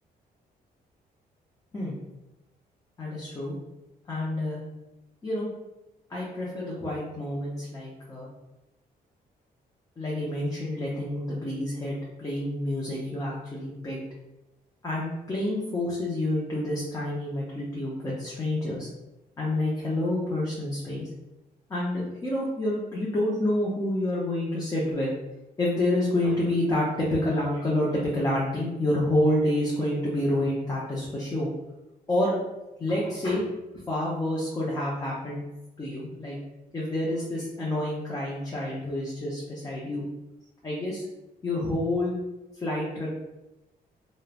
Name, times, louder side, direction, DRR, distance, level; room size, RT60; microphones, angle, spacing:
voice 1, 3.0-3.5 4.1-4.6 5.2-5.5 6.1-8.3 10.0-14.0 14.8-18.9 19.4-21.1 21.7-25.1 25.6-31.5 32.1-32.4 32.8-33.5 33.9-35.4 35.8-36.4 36.7-40.0 40.6-41.0 41.4-42.2 42.6-43.1, left 1 dB, 20° left, -6 dB, 0.5 m, -28 dB
3.0 x 2.0 x 2.3 m, 0.97 s
cardioid pair, 120°, 16 cm